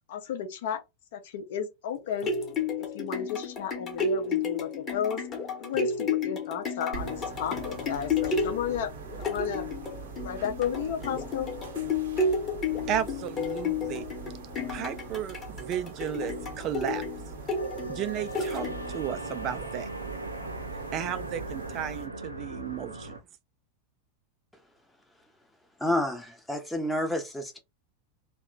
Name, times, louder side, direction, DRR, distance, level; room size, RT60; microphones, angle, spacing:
voice 1, 0.1-0.8 1.1-2.3 2.8-5.2 5.6-8.9 9.2-9.6 10.2-11.5, left 8 dB, 55° left, 0.7 m, -33 dB
sound 1, 1.9-19.1 19.6-19.7, left 4 dB, 25° left, 1.0 m, -32 dB
sound 2, 6.9-22.1, right 5 dB, 60° right, 0.9 m, -43 dB
voice 2, 12.9-14.1 14.7-17.0 17.9-18.7 18.9-19.9 20.9-23.2, right 10 dB, 35° right, 0.4 m, -34 dB
sound 3, 16.2-23.2, right 2 dB, 85° right, 0.5 m, -39 dB
voice 3, 25.8-27.6, left 1 dB, 5° left, 0.7 m, -29 dB
2.8 x 2.2 x 3.7 m
figure-of-eight pair, 90°, 0 cm